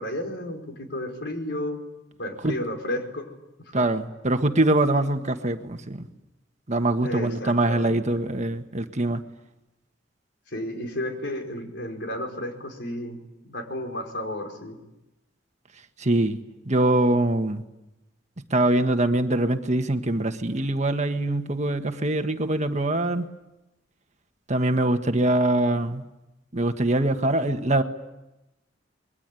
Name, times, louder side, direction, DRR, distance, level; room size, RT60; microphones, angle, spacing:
voice 1, 0.0-1.8 2.2-3.2 3.8-3.9 7.0-8.0 10.5-13.2 13.4-14.8, left 1 dB, 65° left, 5 dB, 5.0 m, -32 dB
voice 2, 3.7-6.1 6.7-9.2 16.0-16.4 16.6-17.6 18.5-23.3 24.5-26.0 26.5-27.8, right 1 dB, 40° right, 6 dB, 1.5 m, -23 dB
26.5 x 22.5 x 9.2 m, 0.95 s
head